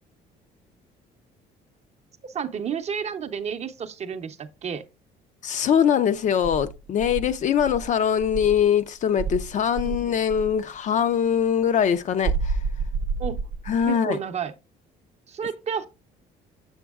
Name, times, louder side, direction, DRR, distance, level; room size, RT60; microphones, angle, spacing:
voice 1, 2.2-4.9 9.8-10.1 13.2-13.4 13.9-14.5 15.3-15.9, right 7 dB, 40° right, 0.6 m, -31 dB
voice 2, 5.4-12.6 13.7-14.2, left 8 dB, 45° left, 0.5 m, -22 dB
Insect, 6.4-8.7 9.2-10.6 12.2-13.9, right 4 dB, 90° right, 0.7 m, -29 dB
7.1 x 6.9 x 2.3 m
cardioid pair, 110°, 17 cm